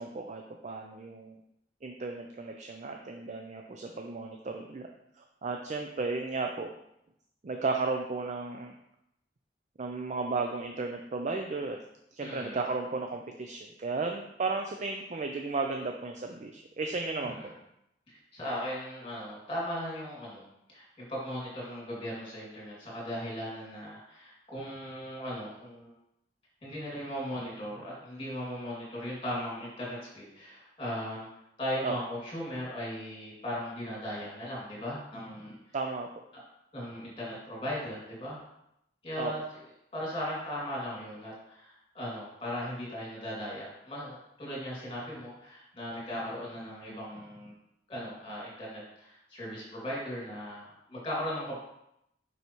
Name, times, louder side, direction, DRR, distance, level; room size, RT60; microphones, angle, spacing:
voice 1, 0.0-1.4 1.8-4.9 5.2-6.7 7.4-8.7 9.8-11.8 12.2-17.5 31.8-31.9 35.7-36.1 39.2-39.3, right 3 dB, 40° right, 3 dB, 0.4 m, -34 dB
voice 2, 12.2-12.6 17.2-17.5 18.1-25.9 26.6-31.3 31.6-35.6 36.7-38.4 39.0-39.4 39.9-47.5 47.9-51.6, equal, 30° left, -5 dB, 2.4 m, -38 dB
5.6 x 5.5 x 3.0 m, 0.80 s
head